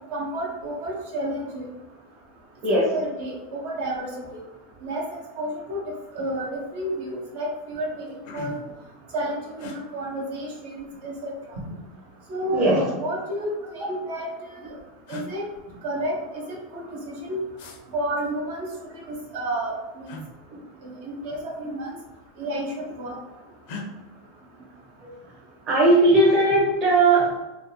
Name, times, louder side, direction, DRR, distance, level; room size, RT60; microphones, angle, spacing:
voice 1, 0.1-1.5 2.7-4.4 4.8-5.0 5.4-5.8 6.1-6.5 6.7-8.1 8.3-8.6 9.1-11.3 12.3-14.3 15.1-15.4 15.8-16.2 16.5-17.4 17.9-18.7 19.3-19.7 20.8-21.9 22.4-23.1, right 1 dB, 75° right, -2 dB, 1.0 m, -30 dB
sound 1, 5.8-6.1 6.5-6.9 7.5-7.6 7.9-8.8 9.6-9.8 11.0-11.7 12.8-13.7 14.6-14.7 15.1-15.3 17.6-17.8 20.0-20.3 21.6-21.9 22.2-22.8 23.6-23.9, left 2 dB, 65° left, 0.6 m, -40 dB
voice 2, 12.5-12.9 13.8-13.9 20.5-20.6 25.0-25.1 25.7-27.3, right 2 dB, 45° right, -6 dB, 1.1 m, -18 dB
3.5 x 2.0 x 2.8 m, 1.1 s
supercardioid pair, 115°, 0 cm